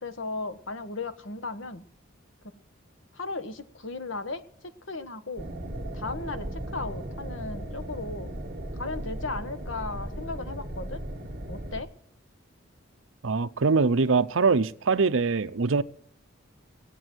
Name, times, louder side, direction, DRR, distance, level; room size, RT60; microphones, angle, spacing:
voice 1, 0.0-1.8 3.1-5.5 5.9-8.3 8.7-11.0 11.5-11.9, left 3 dB, 70° left, 1.3 m, -36 dB
sound 1, 5.4-11.8, right 1 dB, 45° right, 1.6 m, -36 dB
voice 2, 13.2-15.8, right 4 dB, 75° right, 0.7 m, -23 dB
17.0 x 9.0 x 7.7 m
head